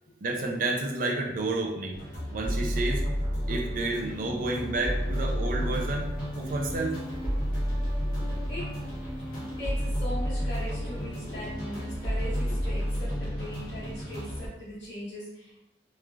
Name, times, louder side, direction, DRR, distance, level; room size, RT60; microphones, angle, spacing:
voice 1, 0.2-2.0 2.3-3.0 3.5-7.0, right 2 dB, 50° right, 0 dB, 0.4 m, -30 dB
sound 1, 1.9-14.5, equal, 50° left, 0.9 m, -31 dB
voice 2, 5.1-5.8 8.0-8.7 9.6-15.6, left 1 dB, 85° left, -11 dB, 1.1 m, -40 dB
3.1 x 2.4 x 2.3 m, 0.91 s
head